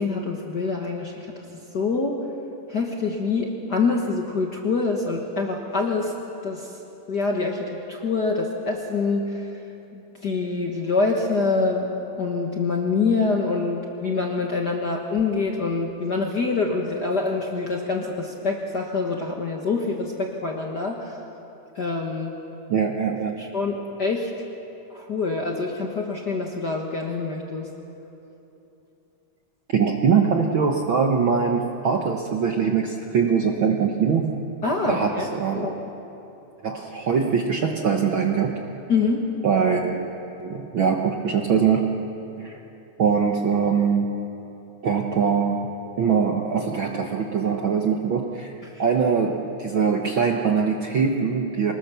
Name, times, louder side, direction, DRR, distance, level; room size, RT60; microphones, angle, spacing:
voice 1, 0.0-1.4 1.7-2.2 2.7-6.1 6.4-6.8 7.1-9.5 9.9-11.9 12.2-21.2 21.7-22.4 23.4-24.3 24.9-27.7 34.6-35.8 38.9-39.2 48.6-48.8, left 4 dB, 45° left, 1 dB, 1.4 m, -25 dB
voice 2, 22.7-23.3 29.7-34.4 34.9-35.6 36.6-38.6 39.4-40.1 40.4-41.9 42.4-42.6 43.0-44.1 44.8-48.5 48.8-51.7, right 6 dB, 60° right, 2 dB, 1.4 m, -22 dB
25.0 x 20.0 x 6.9 m, 2.9 s
omnidirectional pair, 3.6 m